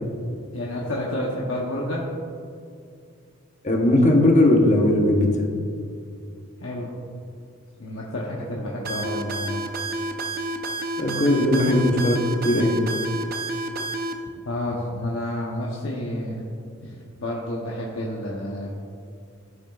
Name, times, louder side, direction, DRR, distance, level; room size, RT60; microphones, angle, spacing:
voice 1, 0.5-2.0 6.6-6.9 7.8-9.6 14.4-16.4 16.8-18.7, left 1 dB, 75° left, -3 dB, 0.9 m, -30 dB
voice 2, 3.6-5.4 11.0-12.8, left 1 dB, 35° left, 1 dB, 1.0 m, -19 dB
sound 1, 8.8-14.1, right 2 dB, 45° right, 0.6 m, -29 dB
14.5 x 6.0 x 2.4 m, 2.4 s
head